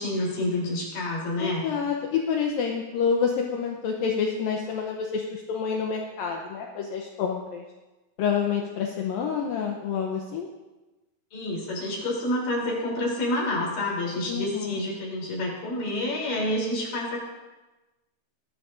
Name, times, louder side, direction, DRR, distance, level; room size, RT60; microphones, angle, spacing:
voice 1, 0.0-1.7 11.3-17.3, left 1 dB, 55° left, -4 dB, 5.1 m, -28 dB
voice 2, 1.4-7.6 8.2-10.5 14.3-14.8, left 6 dB, 75° left, 1 dB, 2.2 m, -28 dB
19.5 x 12.5 x 2.7 m, 1.1 s
omnidirectional pair, 5.0 m